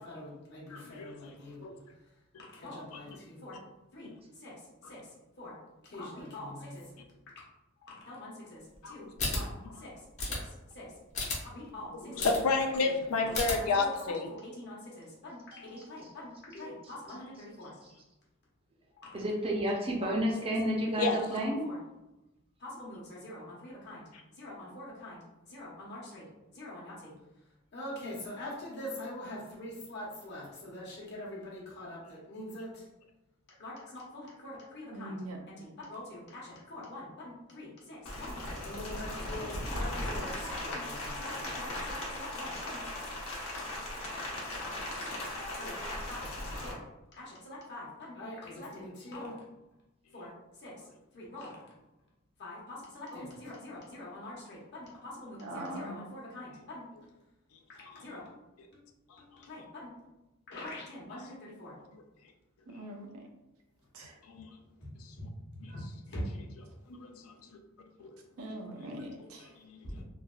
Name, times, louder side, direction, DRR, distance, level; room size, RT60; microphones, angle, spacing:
voice 1, 0.0-1.7 2.4-3.6 3.9-5.6 5.8-6.8 7.9-10.9 11.5-12.3 12.8-14.1 14.4-17.7 19.0-19.2 20.0-20.5 20.8-21.0 21.3-21.8 22.6-24.0 24.3-26.2 26.5-27.1 27.7-32.9 33.6-35.2 35.5-42.8 43.6-43.8 44.6-45.3 45.6-45.8 46.1-46.3 46.6-46.8 47.1-49.4 50.1-50.9 51.1-51.7 52.4-56.8 57.7-58.2 59.4-59.9 60.5-61.8 64.8-66.4 69.8-70.0, left 1 dB, 55° left, 1.0 m, -44 dB
voice 2, 0.7-1.4 1.6-1.7 8.8-8.9 12.2-14.3 21.0-21.2 59.1-59.2 64.2-64.5 65.0-65.1 66.9-67.4 68.0-68.1 68.8-68.9 69.2-69.3 69.6-69.8, left 3 dB, 90° left, 0.4 m, -31 dB
sound 1, 9.2-9.4 10.2-10.4 11.1-11.4 12.2-12.4 13.3-13.5, left 2 dB, 35° left, 0.7 m, -32 dB
voice 3, 19.1-21.6, equal, 25° right, 0.5 m, -30 dB
voice 4, 34.9-35.4 55.4-56.0 62.7-63.3 63.9-64.1 68.4-69.5, right 1 dB, 85° right, 0.6 m, -41 dB
Rain, 38.1-46.7, left 1 dB, 70° left, 0.8 m, -38 dB
3.2 x 2.2 x 2.3 m
head